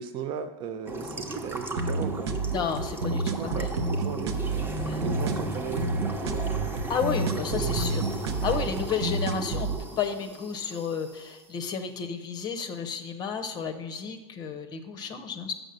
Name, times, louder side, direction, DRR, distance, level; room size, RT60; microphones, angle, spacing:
voice 1, 0.0-2.3 3.1-4.4 5.0-6.5 7.3-7.8, right 8 dB, 35° right, 9 dB, 0.5 m, -36 dB
sound 1, 0.9-11.3, right 1 dB, 15° right, 0.9 m, -36 dB
sound 2, 1.8-9.8, right 3 dB, 70° right, 0.9 m, -30 dB
voice 2, 2.5-3.7 4.8-5.0 6.9-8.0 8.4-9.7 10.0-15.5, left 6 dB, 30° left, 7 dB, 0.7 m, -32 dB
6.5 x 6.2 x 6.6 m, 1.1 s
hypercardioid pair, 125°, 14 cm